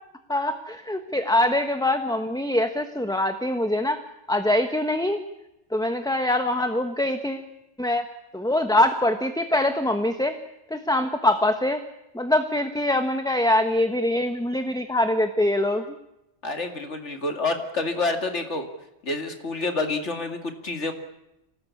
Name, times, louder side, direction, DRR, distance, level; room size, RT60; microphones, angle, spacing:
voice 1, 0.3-4.0 4.3-5.2 5.7-7.5 7.8-8.1 8.3-10.4 10.7-11.8 12.1-16.0, left 1 dB, 5° left, 7 dB, 1.2 m, -23 dB
voice 2, 16.4-18.7 19.0-20.9, left 3 dB, 80° left, 5 dB, 2.8 m, -28 dB
26.0 x 18.5 x 8.5 m, 0.89 s
omnidirectional pair, 1.2 m